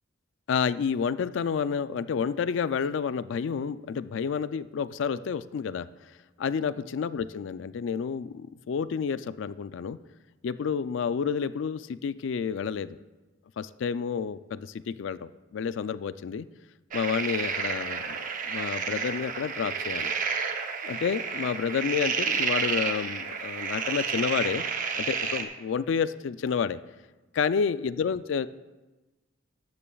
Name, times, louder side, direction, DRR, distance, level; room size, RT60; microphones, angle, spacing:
voice 1, 0.5-5.9 6.4-10.0 10.4-13.0 13.6-16.5 16.9-18.2 18.5-20.1 20.8-24.6 25.0-26.8 27.3-28.5, left 6 dB, 60° left, 14 dB, 0.3 m, -30 dB
sound 1, 16.9-25.4, right 5 dB, 40° right, 0.7 m, -30 dB
13.5 x 10.0 x 2.3 m, 1.2 s
head